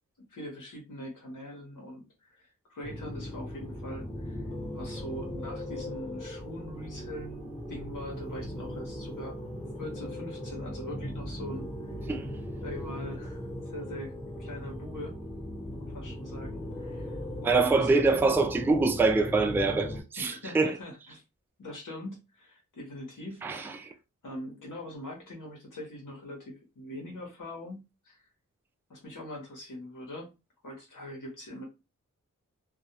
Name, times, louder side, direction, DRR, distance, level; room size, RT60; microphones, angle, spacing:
voice 1, 0.3-4.5 4.7-9.4 9.8-11.7 12.6-14.1 14.4-15.2 15.7-17.9 20.2-21.2 21.6-23.9 24.2-28.2 28.9-30.3 30.6-31.6, left 1 dB, 70° left, 0.9 m, -42 dB
sound 1, 2.8-20.0, left 1 dB, 20° left, 1.1 m, -38 dB
voice 2, 17.4-20.7 23.4-23.9, right 3 dB, 5° right, 0.3 m, -25 dB
2.3 x 2.1 x 2.7 m
wide cardioid pair, 65°, 33 cm